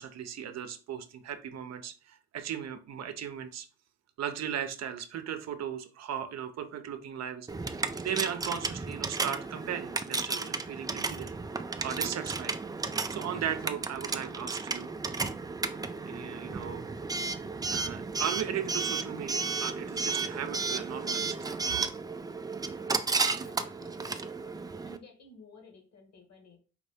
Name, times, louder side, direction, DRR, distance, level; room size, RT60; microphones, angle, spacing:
voice 1, 0.0-3.7 4.2-7.8 8.0-11.3 11.8-12.6 13.1-14.9 16.1-16.8 17.7-21.4, right 9 dB, 60° right, 8 dB, 0.7 m, -37 dB
Coin (dropping) / Alarm, 7.5-25.0, right 4 dB, 15° right, 0.3 m, -33 dB
voice 2, 23.1-24.5 24.8-26.6, left 2 dB, 55° left, 4 dB, 1.6 m, -54 dB
4.8 x 2.6 x 3.4 m, 0.37 s
cardioid pair, 90°, 30 cm